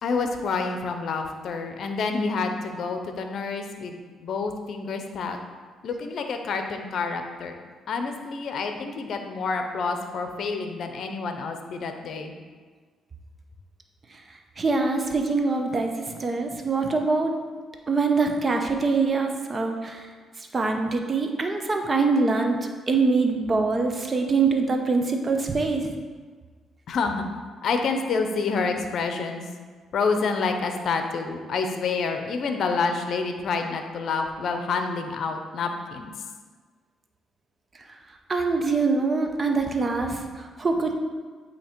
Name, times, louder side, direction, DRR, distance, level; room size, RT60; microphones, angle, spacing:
voice 1, 0.0-5.4 5.8-7.6 7.9-12.3 26.9-27.3 27.6-29.4 29.9-36.1, left 4 dB, 65° left, 5 dB, 0.7 m, -28 dB
voice 2, 14.6-17.3 17.9-20.0 20.5-22.6 22.9-25.9 38.3-40.9, right 4 dB, 30° right, 3 dB, 0.7 m, -24 dB
8.3 x 2.9 x 4.4 m, 1.5 s
cardioid pair, 90°, 0 cm